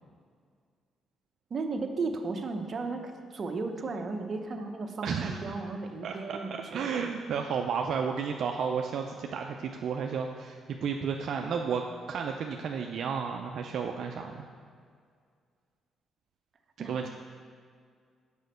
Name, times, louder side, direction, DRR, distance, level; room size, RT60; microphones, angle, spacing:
voice 1, 1.5-7.0 16.8-17.1, right 3 dB, 45° right, 4 dB, 0.9 m, -35 dB
voice 2, 5.0-5.5 6.0-14.4 16.9-17.1, right 6 dB, 65° right, 3 dB, 0.4 m, -32 dB
6.3 x 5.1 x 6.6 m, 2.1 s
cardioid pair, 90°, 0 cm